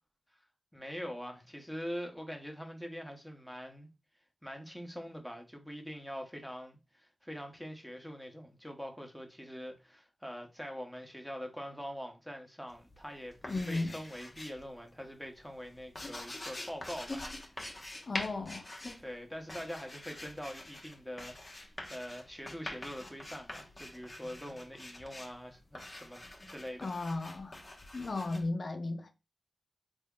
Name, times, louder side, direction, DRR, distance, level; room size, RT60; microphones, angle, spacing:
voice 1, 0.7-3.9 4.4-17.3 19.0-26.9, equal, ahead, 1.0 m, -44 dB
sound 1, 12.7-14.7 15.0-28.5, left 1 dB, 35° left, 0.9 m, -45 dB
voice 2, 13.5-14.0 18.1-18.8 26.8-27.6 27.9-29.1, left 2 dB, 60° left, 0.3 m, -35 dB
3.5 x 2.1 x 3.7 m
cardioid pair, 50°, 0 cm